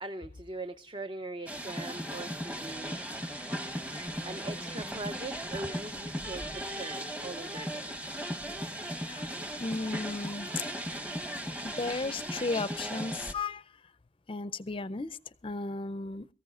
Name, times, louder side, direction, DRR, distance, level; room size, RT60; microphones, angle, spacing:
voice 1, 0.0-3.0 4.2-8.0, right 2 dB, 25° right, 9 dB, 0.6 m, -41 dB
nyc loopable monowashjazz fountainperspective, 1.5-13.3, equal, 5° right, 1.0 m, -37 dB
voice 2, 9.0-9.3 9.6-10.5 11.6-13.6 14.3-16.3, left 3 dB, 30° left, 18 dB, 0.5 m, -35 dB
22.5 x 14.5 x 2.4 m, 0.38 s
head